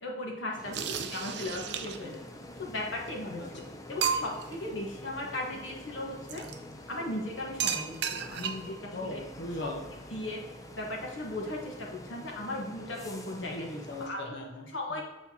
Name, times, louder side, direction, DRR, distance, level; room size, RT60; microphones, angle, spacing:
voice 1, 0.0-2.2 2.6-6.4 6.9-9.2 9.6-9.7 10.1-10.4 10.8-13.7 14.0-14.3 14.7-15.0, left 1 dB, 80° left, -1 dB, 1.5 m, -37 dB
voice 2, 0.6-1.3 2.0-2.1 3.4-3.5 8.9-9.9 13.5-15.0, left 1 dB, 60° left, 1 dB, 1.0 m, -40 dB
sound 1, 0.6-14.1, left 1 dB, 20° left, 0.5 m, -47 dB
sound 2, 0.7-2.2 3.1-3.2 3.6-3.7 4.0-4.6 6.3-6.6 7.6-8.8, right 7 dB, 60° right, 0.5 m, -33 dB
6.8 x 5.9 x 2.9 m, 1.1 s
head